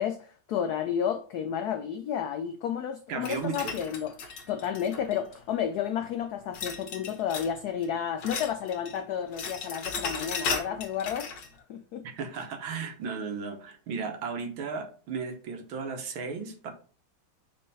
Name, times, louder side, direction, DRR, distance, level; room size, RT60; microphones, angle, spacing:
voice 1, 0.0-4.1 4.5-11.3 11.7-12.0, left 8 dB, 85° left, 0.8 m, -31 dB
voice 2, 3.1-3.8 12.0-16.7, right 5 dB, 75° right, 1.8 m, -35 dB
sound 1, 3.2-5.3 6.5-7.6 7.8-9.0 9.2-11.5, left 5 dB, 60° left, 1.7 m, -36 dB
5.5 x 4.2 x 4.0 m
omnidirectional pair, 2.2 m